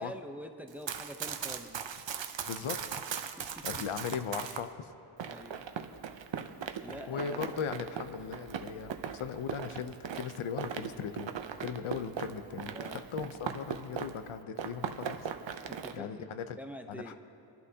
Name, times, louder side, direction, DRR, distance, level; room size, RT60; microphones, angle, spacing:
voice 1, 0.0-1.8 3.4-3.6 5.3-5.7 6.3-7.4 12.6-13.0 15.7-16.3 16.6-17.2, equal, 5° right, 5 dB, 0.7 m, -45 dB
Run, 0.7-4.6 5.2-14.3 14.6-15.9, right 7 dB, 65° right, 0.7 m, -39 dB
voice 2, 2.4-2.8 3.6-4.9 7.1-11.3 11.6-15.3 15.5-15.7 15.9-16.6 16.9-17.2, left 7 dB, 85° left, 10 dB, 0.7 m, -38 dB
28.5 x 11.5 x 2.8 m, 2.6 s
wide cardioid pair, 120°, 48 cm